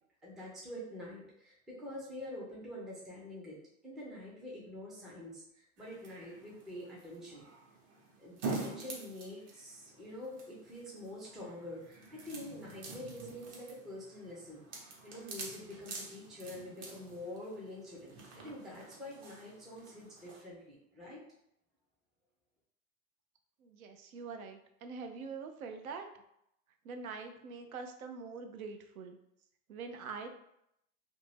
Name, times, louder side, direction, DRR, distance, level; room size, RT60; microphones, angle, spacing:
voice 1, 0.2-7.5 8.2-21.2, left 1 dB, ahead, -6 dB, 0.3 m, -46 dB
sound 1, 5.8-20.4, right 3 dB, 45° right, 0.9 m, -47 dB
voice 2, 23.6-26.1 26.8-29.2 29.7-30.3, right 5 dB, 85° right, 6 dB, 0.6 m, -44 dB
2.6 x 2.2 x 3.2 m, 0.76 s
hypercardioid pair, 110°, 41 cm